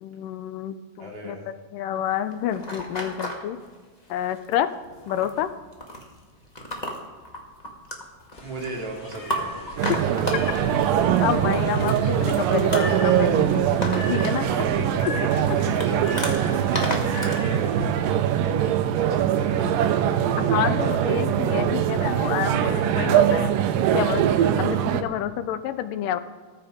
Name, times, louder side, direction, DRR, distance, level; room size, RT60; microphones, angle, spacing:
voice 1, 0.0-3.6 4.1-4.7 5.1-5.5 9.9-10.0 11.2-13.6 14.1-14.5 20.4-23.5 23.9-26.2, left 11 dB, 85° left, 12 dB, 2.2 m, -28 dB
voice 2, 1.0-1.5 8.4-10.0 14.5-15.1 15.4-16.9 17.1-20.6 21.0-21.1, right 2 dB, 45° right, -2 dB, 3.5 m, -37 dB
sound 1, 2.1-3.4 4.0-4.5 4.8-17.4, left 1 dB, 25° left, 0.8 m, -34 dB
sound 2, 8.3-17.9, left 2 dB, 45° left, 1.3 m, -39 dB
sound 3, 9.8-25.0, right 9 dB, 85° right, 2.4 m, -22 dB
14.0 x 14.0 x 5.1 m, 1.4 s
omnidirectional pair, 3.9 m